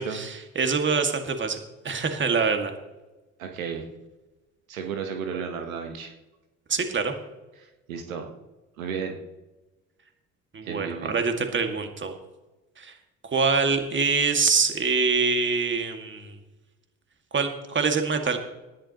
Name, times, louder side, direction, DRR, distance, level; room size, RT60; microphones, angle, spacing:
voice 1, 0.0-1.6 1.8-2.7 5.3-5.4 6.7-7.1 10.5-12.1 12.8-12.9 13.2-16.3 17.3-18.4, right 5 dB, 30° right, 5 dB, 2.1 m, -25 dB
voice 2, 3.4-3.8 4.7-6.1 7.6-8.3 8.8-9.2 10.6-11.1, right 6 dB, 75° right, 5 dB, 1.3 m, -33 dB
19.0 x 11.5 x 3.0 m, 1.1 s
figure-of-eight pair, 55°, 41 cm